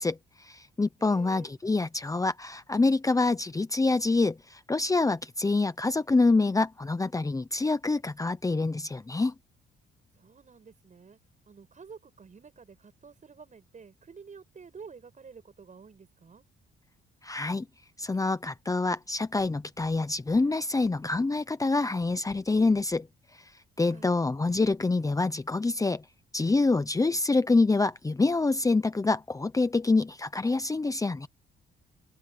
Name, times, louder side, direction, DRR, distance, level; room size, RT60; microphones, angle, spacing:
voice 1, 0.0-9.3 17.2-17.6 18.0-23.1 23.8-26.0 26.3-31.3, left 3 dB, 15° left, 0.9 m, -26 dB
voice 2, 1.0-1.5 10.2-11.2 11.5-16.4 23.8-24.1, right 5 dB, 40° right, 7.8 m, -50 dB
open air
cardioid pair, 90°, 20 cm